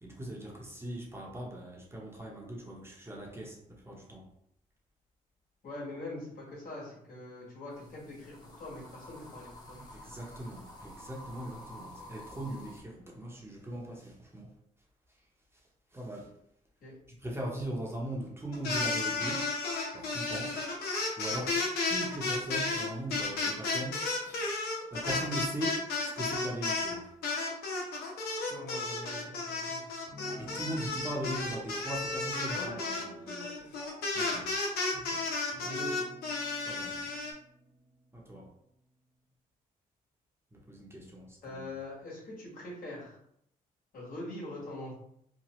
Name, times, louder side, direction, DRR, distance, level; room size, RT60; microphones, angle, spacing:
voice 1, 0.0-4.2 10.0-14.5 15.9-16.3 17.2-19.4 19.9-20.5 21.2-21.5 21.9-24.4 24.9-27.0 30.4-32.7 34.1-34.5 34.9-35.2 36.6-37.0 38.1-38.5 40.5-41.6, right 1 dB, 15° right, -2 dB, 0.8 m, -39 dB
voice 2, 5.6-9.8 16.8-16.9 21.3-21.6 28.5-29.8 32.5-33.8 35.6-35.9 41.4-43.2 43.9-44.9, left 1 dB, 65° left, -5 dB, 1.5 m, -43 dB
sound 1, 7.7-12.8, left 1 dB, 25° left, 0.9 m, -50 dB
sound 2, 18.5-26.9 27.2-37.3, left 3 dB, 85° left, 0.7 m, -33 dB
Guitar, 30.1-31.3 32.5-33.5 33.8-34.9 35.5-39.0, equal, 55° right, 1.1 m, -51 dB
2.9 x 2.1 x 3.0 m, 0.72 s
cardioid pair, 70°, 16 cm